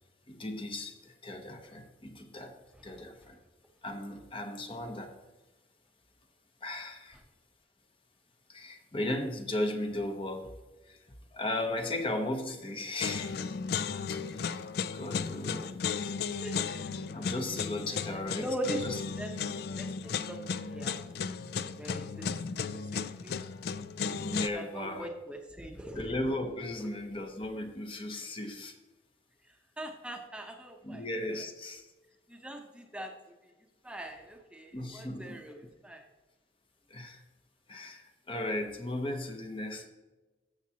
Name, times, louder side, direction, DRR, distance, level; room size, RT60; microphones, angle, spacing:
voice 1, 0.3-2.6 2.8-3.4 3.8-5.1 6.6-7.2 8.5-10.5 10.8-11.1 11.3-13.5 14.1-14.7 14.9-16.1 17.1-19.0 24.2-25.1 25.9-28.8 30.8-31.9 34.7-35.4 36.9-37.2 37.7-39.9, left 1 dB, 30° left, 5 dB, 0.8 m, -36 dB
sound 1, 13.0-24.5, left 6 dB, 55° left, 0.3 m, -35 dB
voice 2, 16.4-16.9 18.1-18.8 19.2-21.0 21.6-22.3 22.9-23.3 24.5-26.0 29.8-31.0 32.3-33.1 33.4-33.5 33.8-36.0, right 1 dB, 5° right, 3 dB, 0.7 m, -41 dB
13.5 x 7.1 x 2.8 m, 1.2 s
head